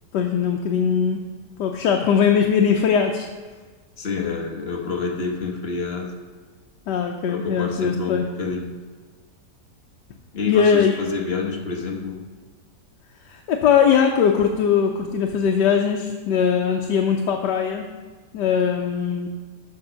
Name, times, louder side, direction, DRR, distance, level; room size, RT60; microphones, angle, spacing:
voice 1, 0.1-1.2 1.6-3.3 6.9-8.2 10.5-11.0 13.3-17.9 18.3-19.3, left 7 dB, 85° left, 2 dB, 1.3 m, -20 dB
voice 2, 4.0-6.1 7.3-8.7 10.3-12.2, left 4 dB, 40° left, 1 dB, 1.2 m, -28 dB
7.3 x 5.4 x 6.3 m, 1.4 s
omnidirectional pair, 1.8 m